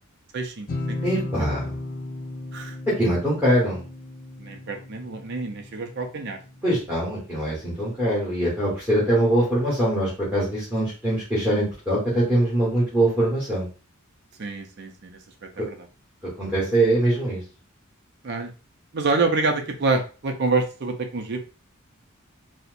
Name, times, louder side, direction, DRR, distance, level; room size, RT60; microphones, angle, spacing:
voice 1, 0.3-1.0 1.3-1.5 2.5-2.8 4.4-6.4 14.4-15.2 15.6-15.8 18.2-18.5 18.9-21.4, right 3 dB, 50° right, 4 dB, 0.5 m, -27 dB
sound 1, 0.7-6.3, left 2 dB, 40° left, 0.6 m, -35 dB
voice 2, 1.0-1.7 3.0-3.8 6.6-13.7 15.6-15.7 16.4-17.4, right 1 dB, 10° right, -8 dB, 1.4 m, -23 dB
4.2 x 2.1 x 2.5 m, 0.34 s
head